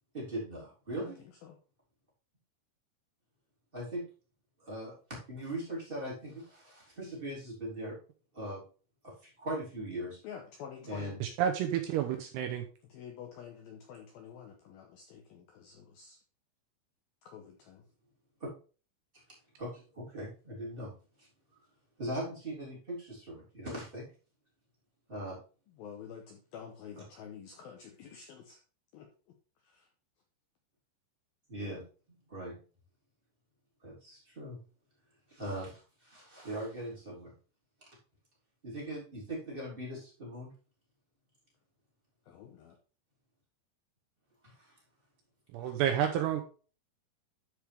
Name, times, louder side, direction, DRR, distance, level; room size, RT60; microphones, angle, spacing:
voice 1, 0.1-1.2 3.7-4.0 4.6-4.9 5.3-8.0 8.3-8.6 9.0-10.2 10.8-11.2 18.4-18.5 19.1-19.2 19.6-20.9 21.2-21.3 22.0-24.1 25.1-25.4 31.5-31.8 32.1-32.6 33.8-34.6 35.3-37.3 38.6-40.5 44.4-44.7 45.6-45.7, right 1 dB, 15° right, -5 dB, 2.9 m, -40 dB
voice 2, 0.9-1.6 10.2-11.2 12.9-16.2 17.2-17.9 25.7-28.6 28.9-29.4 29.6-29.9 42.3-42.8, left 7 dB, 75° left, 2 dB, 2.2 m, -49 dB
voice 3, 11.2-12.6 45.5-46.4, right 9 dB, 80° right, 5 dB, 2.5 m, -30 dB
13.0 x 4.9 x 3.4 m, 0.37 s
omnidirectional pair, 5.3 m